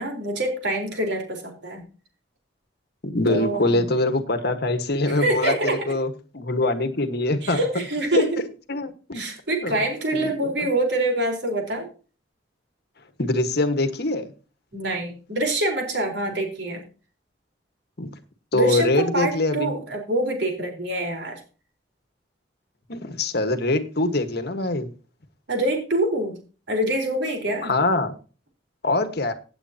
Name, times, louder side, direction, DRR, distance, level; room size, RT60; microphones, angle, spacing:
voice 1, 0.0-1.8 3.3-3.8 5.1-5.8 7.4-8.4 9.1-11.9 14.7-16.8 18.5-21.4 25.5-26.4 26.7-27.7, right 1 dB, 65° right, 4.2 m, -25 dB
voice 2, 3.0-5.5 5.9-7.6 8.1-8.2 8.7-9.2 9.6-9.8 10.1-10.3 10.6-10.7 13.2-14.3 18.0-18.1 18.5-19.7 22.9-24.9 27.6-28.1 28.8-29.3, left 2 dB, 60° left, 1.5 m, -23 dB
16.5 x 8.4 x 2.9 m
head